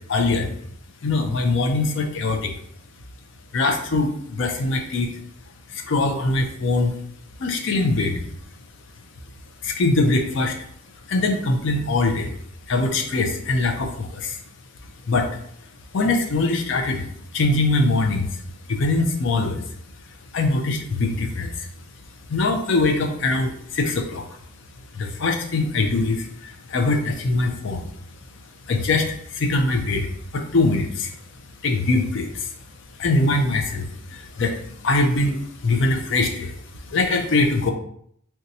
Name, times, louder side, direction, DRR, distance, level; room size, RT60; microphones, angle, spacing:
voice 1, 0.1-0.5 1.0-2.5 3.5-5.1 5.7-6.9 7.4-8.2 9.6-10.6 11.1-12.3 12.7-14.4 15.1-15.3 15.9-17.1 17.3-18.3 18.7-19.6 20.3-21.7 22.3-24.2 24.9-27.9 28.7-31.1 31.6-32.5 33.0-34.5 34.8-36.5 36.9-37.7, left 2 dB, 60° left, 4 dB, 0.5 m, -22 dB
2.6 x 2.2 x 4.0 m, 0.67 s
head